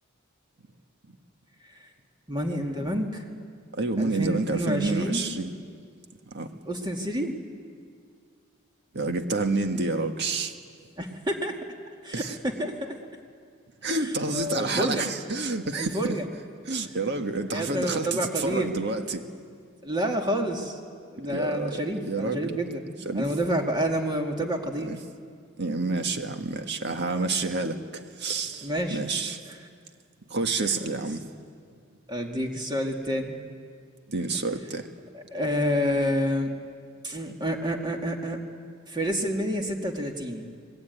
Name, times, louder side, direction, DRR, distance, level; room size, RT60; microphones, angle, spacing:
voice 1, 2.3-3.2 4.0-5.3 6.7-7.4 11.0-11.6 12.0-13.0 14.3-15.0 15.8-16.2 17.5-18.7 19.8-20.8 21.1-24.9 28.6-29.0 29.5-29.6 32.1-33.4 35.1-36.5 37.0-38.4 38.9-40.4, equal, 20° right, 2 dB, 2.2 m, -28 dB
voice 2, 3.7-5.5 6.3-6.5 8.9-10.5 12.1-12.4 13.8-16.2 16.6-19.3 21.3-22.5 23.0-23.3 24.8-25.0 25.6-29.4 30.3-31.3 34.1-34.9, right 3 dB, 55° right, 6 dB, 1.7 m, -29 dB
26.0 x 20.5 x 9.3 m, 2.1 s
head